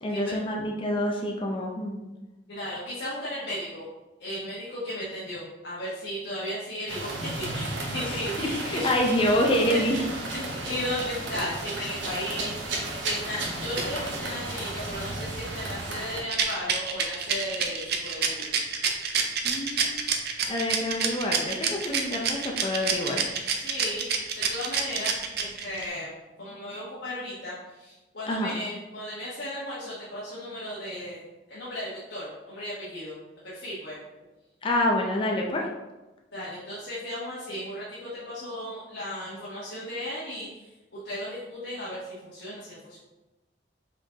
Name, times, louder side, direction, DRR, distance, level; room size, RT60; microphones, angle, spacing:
voice 1, 0.0-2.0 8.1-10.0 19.4-20.0 20.5-23.3 28.3-28.6 34.6-35.7, left 1 dB, 30° left, 0 dB, 0.5 m, -27 dB
voice 2, 2.5-3.8 4.2-9.2 9.7-9.8 10.3-18.5 21.6-22.0 23.5-26.1 26.4-33.2 33.4-34.0 36.3-43.0, left 1 dB, 70° left, -8 dB, 1.2 m, -35 dB
sound 1, 6.9-16.2, right 2 dB, 85° right, 0.9 m, -33 dB
Rattle, 16.3-25.8, right 7 dB, 60° right, 0.5 m, -27 dB
4.9 x 3.7 x 2.9 m, 1.1 s
head